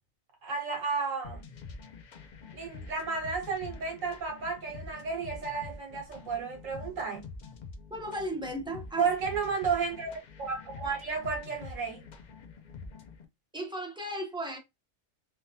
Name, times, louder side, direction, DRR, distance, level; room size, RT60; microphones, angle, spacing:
voice 1, 0.4-1.5 2.5-7.3 9.0-12.0, right 5 dB, 75° right, 1.3 m, -32 dB
sound 1, 1.2-13.3, left 4 dB, 60° left, 0.4 m, -46 dB
voice 2, 7.9-9.1 13.5-14.6, right 1 dB, 5° right, 0.5 m, -35 dB
3.5 x 2.3 x 2.7 m
omnidirectional pair, 1.4 m